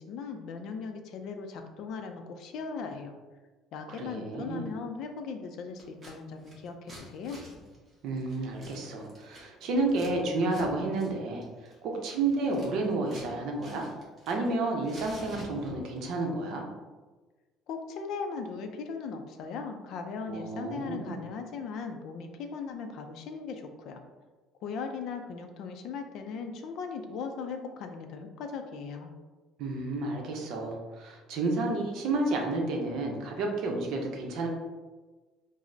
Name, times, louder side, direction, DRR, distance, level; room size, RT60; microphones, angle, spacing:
voice 1, 0.0-3.2 3.7-7.4 17.7-24.0 24.6-29.1, left 5 dB, 60° left, 5 dB, 0.4 m, -38 dB
voice 2, 3.9-4.7 8.0-11.5 11.8-13.9 14.3-16.7 20.3-21.2 29.6-34.5, right 2 dB, 60° right, 1 dB, 0.6 m, -31 dB
Scissors, 5.8-6.1 6.4-10.1 10.4-10.7 10.9-11.1 11.4-13.3 13.6-14.5 14.8-16.0, equal, 20° right, 1.0 m, -48 dB
4.9 x 2.0 x 2.6 m, 1.3 s
cardioid pair, 150°, 0 cm